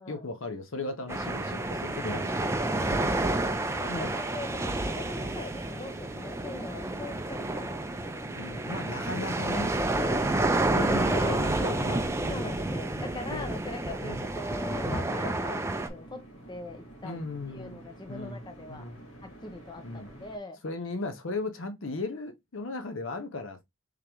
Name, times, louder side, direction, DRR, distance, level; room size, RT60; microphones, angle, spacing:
voice 1, 0.0-2.5 2.8-3.1 3.9-4.1 4.6-4.8 8.4-9.7 10.6-12.6 13.2-13.5 14.0-14.3 14.8-15.1 17.0-17.8 18.1-18.4 18.7-19.0 19.8-20.1 20.6-23.6, left 2 dB, 65° left, 0.7 m, -37 dB
sound 1, 1.1-15.9, right 2 dB, 15° right, 0.4 m, -30 dB
voice 2, 2.8-8.4 10.0-10.3 11.0-11.6 12.3-17.2 17.5-18.9 19.2-20.6, left 2 dB, 20° left, 0.7 m, -41 dB
sound 2, 2.9-20.4, right 1 dB, 90° left, 1.8 m, -49 dB
3.7 x 3.4 x 3.0 m
head